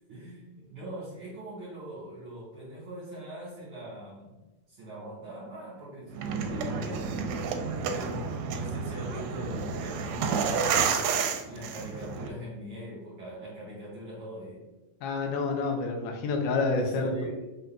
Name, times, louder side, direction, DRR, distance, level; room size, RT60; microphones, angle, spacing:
voice 1, 0.1-4.4 4.7-7.5 7.9-14.6 16.8-17.5, right 1 dB, 50° right, -8 dB, 1.9 m, -42 dB
sound 1, 6.1-12.3, right 6 dB, 80° right, 1.9 m, -30 dB
voice 2, 15.0-17.1, left 3 dB, 85° left, 3 dB, 2.3 m, -28 dB
5.5 x 3.8 x 2.2 m, 1.1 s
omnidirectional pair, 3.6 m